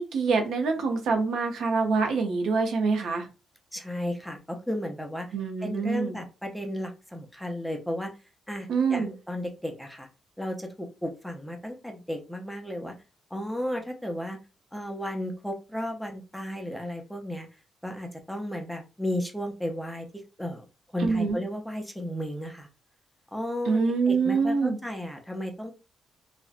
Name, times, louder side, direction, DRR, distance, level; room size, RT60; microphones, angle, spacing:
voice 1, 0.0-3.3 5.3-6.1 8.7-9.1 21.0-21.4 23.7-24.8, right 4 dB, 75° right, 4 dB, 0.6 m, -25 dB
voice 2, 3.7-5.3 5.6-8.1 8.5-10.1 10.4-12.9 13.3-14.4 14.7-17.5 17.8-20.1 20.4-20.6 20.9-22.7 23.3-25.7, equal, ahead, 3 dB, 0.5 m, -34 dB
2.7 x 2.1 x 2.4 m, 0.30 s
cardioid pair, 100°, 0 cm